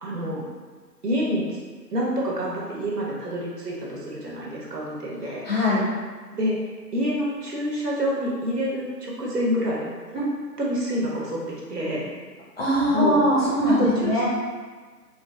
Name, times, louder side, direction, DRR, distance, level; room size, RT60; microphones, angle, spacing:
voice 1, 0.0-0.4 1.0-1.4 1.9-5.5 6.3-6.6 6.9-10.2 10.6-11.4 11.7-12.0 12.9-13.2 13.8-14.2, equal, 70° right, -4 dB, 1.0 m, -27 dB
voice 2, 5.4-5.8 10.1-10.2 12.6-14.2, equal, 35° left, -8 dB, 0.8 m, -21 dB
3.2 x 2.5 x 2.2 m, 1.4 s
figure-of-eight pair, 150°, 49 cm